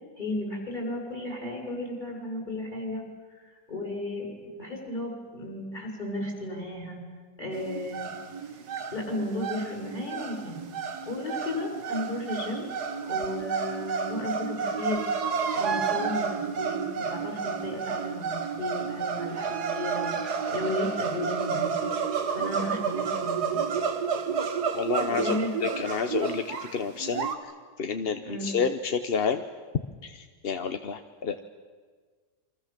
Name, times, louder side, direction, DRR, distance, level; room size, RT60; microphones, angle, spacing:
voice 1, 0.2-3.0 3.4-4.3 4.6-7.0 7.4-8.1 8.9-10.7 11.1-12.7 13.0-15.1 15.5-21.7 22.3-23.6 25.1-25.6 28.2-28.6, left 1 dB, 25° left, 1 dB, 7.6 m, -34 dB
sound 1, 7.5-27.3, right 6 dB, 65° right, 2.0 m, -31 dB
voice 2, 24.7-27.5 27.8-29.4 30.0-31.4, left 6 dB, 40° left, 7 dB, 1.0 m, -30 dB
28.5 x 25.0 x 7.5 m, 1.5 s
omnidirectional pair, 1.9 m